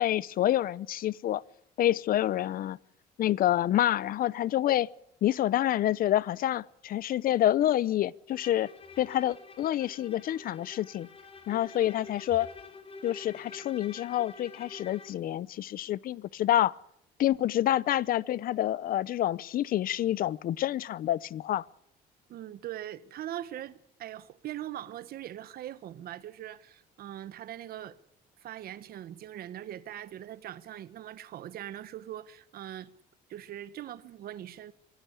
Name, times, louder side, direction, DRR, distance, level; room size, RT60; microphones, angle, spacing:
voice 1, 0.0-1.4 1.8-2.8 3.2-4.9 5.2-8.7 9.0-11.1 11.5-12.5 13.0-16.8 17.2-21.6, left 12 dB, 60° left, 0.8 m, -27 dB
Bowed string instrument, 8.3-15.3, left 4 dB, 35° left, 3.6 m, -48 dB
voice 2, 22.3-28.0 28.4-32.9 33.3-34.7, right 12 dB, 65° right, 1.4 m, -41 dB
24.5 x 16.0 x 8.4 m
cardioid pair, 110°, 17 cm